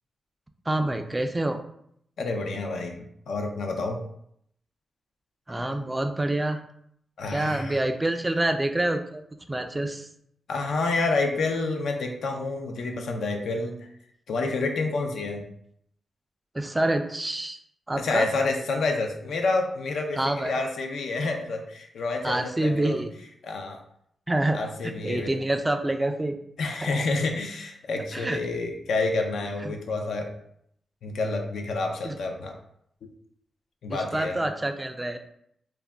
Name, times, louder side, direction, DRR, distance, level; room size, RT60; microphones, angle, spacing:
voice 1, 0.7-1.6 5.5-6.6 7.3-9.2 9.5-10.1 16.5-17.6 17.9-18.3 20.2-20.5 22.2-23.1 24.3-26.4 26.8-27.0 28.1-28.4 29.6-29.7 32.0-32.2 33.9-35.2, right 1 dB, 20° right, 7 dB, 0.3 m, -27 dB
voice 2, 2.2-4.0 7.2-7.8 10.5-13.8 14.3-15.5 18.0-23.0 23.4-23.8 24.5-25.4 26.6-30.3 31.0-32.5 33.0-33.1 33.8-34.5, left 3 dB, 80° left, 3 dB, 0.4 m, -29 dB
2.3 x 2.1 x 3.5 m, 0.71 s
cardioid pair, 65°, 0 cm